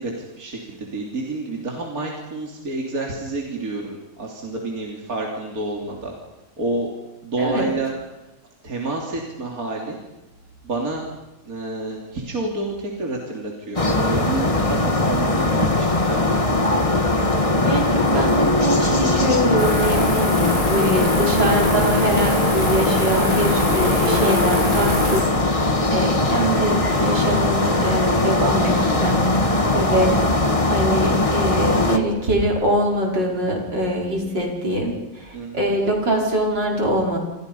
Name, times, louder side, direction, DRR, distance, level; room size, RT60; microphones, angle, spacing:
voice 1, 0.0-6.1 6.6-6.9 7.2-7.9 8.6-10.0 10.6-11.1 11.4-16.9 29.6-30.1 35.3-35.7, right 2 dB, 45° right, -1 dB, 3.7 m, -29 dB
voice 2, 7.4-7.7 17.6-25.3 25.5-30.4 30.7-37.2, right 1 dB, 65° right, -1 dB, 5.9 m, -23 dB
sound 1, 13.8-32.0, left 2 dB, 20° left, 1.6 m, -20 dB
sound 2, 19.6-25.2, left 1 dB, 45° left, 7.2 m, -26 dB
28.0 x 27.0 x 5.6 m, 1.0 s
omnidirectional pair, 2.0 m